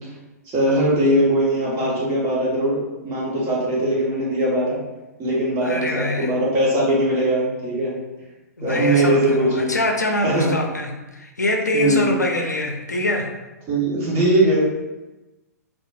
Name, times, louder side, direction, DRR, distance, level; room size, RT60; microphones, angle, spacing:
voice 1, 0.5-4.8 5.2-7.9 8.6-9.7 10.2-10.5 11.7-12.1 13.7-14.6, right 1 dB, 25° right, -6 dB, 1.1 m, -20 dB
voice 2, 5.6-6.3 8.6-13.3, left 1 dB, 85° left, 3 dB, 0.5 m, -24 dB
3.7 x 2.3 x 2.4 m, 1.1 s
figure-of-eight pair, 110°, 9 cm